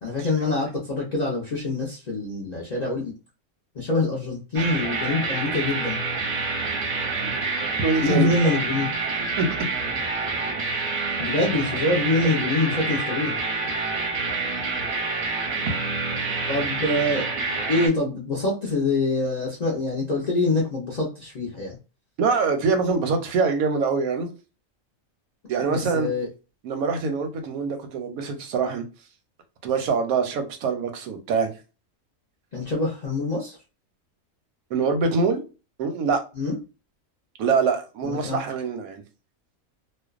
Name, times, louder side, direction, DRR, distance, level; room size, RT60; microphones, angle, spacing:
voice 1, 0.0-3.1 3.7-6.0 8.0-8.9 11.2-13.4 16.5-17.3 17.7-21.8 25.7-26.3 32.5-33.6 36.3-36.6 38.0-38.4, left 2 dB, 55° left, 0.4 m, -25 dB
sound 1, 4.5-17.9, right 3 dB, 55° right, 0.6 m, -27 dB
voice 2, 7.8-8.3 9.4-9.5 22.2-24.3 25.5-26.1 26.6-28.8 29.6-31.5 34.7-35.4 35.8-36.2 37.4-39.0, right 5 dB, 85° right, 1.0 m, -24 dB
2.5 x 2.1 x 2.3 m
omnidirectional pair, 1.4 m